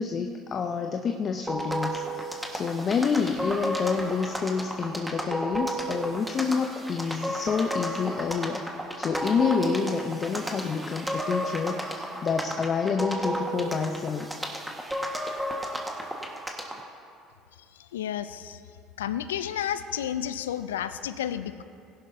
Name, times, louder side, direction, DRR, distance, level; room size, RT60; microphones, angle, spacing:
voice 1, 0.0-8.6 9.0-14.3, left 5 dB, 45° left, 5 dB, 0.6 m, -28 dB
sound 1, 1.5-16.8, right 1 dB, 5° right, 1.5 m, -33 dB
voice 2, 17.9-18.6 19.0-21.6, left 10 dB, 90° left, 13 dB, 0.4 m, -31 dB
18.0 x 11.0 x 2.7 m, 2.4 s
hypercardioid pair, 70°, 0 cm